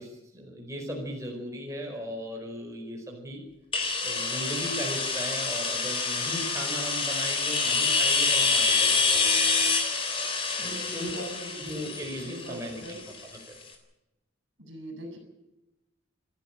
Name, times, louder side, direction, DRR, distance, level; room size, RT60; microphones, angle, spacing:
voice 1, 0.0-3.4 4.0-9.4 10.6-11.1 11.6-13.1 13.5-13.6, equal, 15° right, 0 dB, 4.9 m, -37 dB
sound 1, 3.7-13.4, left 4 dB, 25° left, 3.5 m, -27 dB
voice 2, 10.6-11.9 12.2-13.0 14.6-15.2, right 1 dB, 65° right, 6 dB, 6.9 m, -40 dB
28.5 x 11.5 x 9.0 m, 0.94 s
head